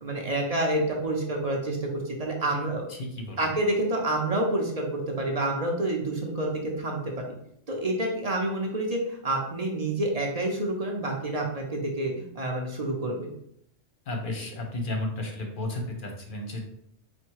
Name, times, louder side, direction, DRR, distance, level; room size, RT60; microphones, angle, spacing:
voice 1, 0.0-2.9 3.4-7.2 7.7-13.3, right 1 dB, 45° right, 0 dB, 0.5 m, -28 dB
voice 2, 2.4-3.5 14.1-16.6, left 2 dB, 50° left, 2 dB, 0.8 m, -33 dB
4.3 x 2.2 x 4.5 m, 0.72 s
omnidirectional pair, 1.3 m